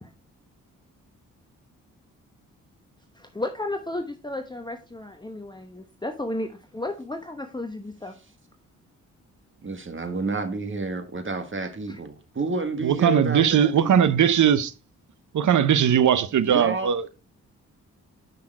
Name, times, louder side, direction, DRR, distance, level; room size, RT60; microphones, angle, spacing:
voice 1, 3.1-8.2 11.9-12.0, left 2 dB, 10° left, 0.9 m, -33 dB
voice 2, 9.6-14.2 16.4-17.1, right 3 dB, 35° right, 1.6 m, -30 dB
voice 3, 12.8-14.7 15.3-17.1, right 8 dB, 55° right, 0.7 m, -19 dB
6.6 x 5.7 x 4.4 m
hypercardioid pair, 40°, 35 cm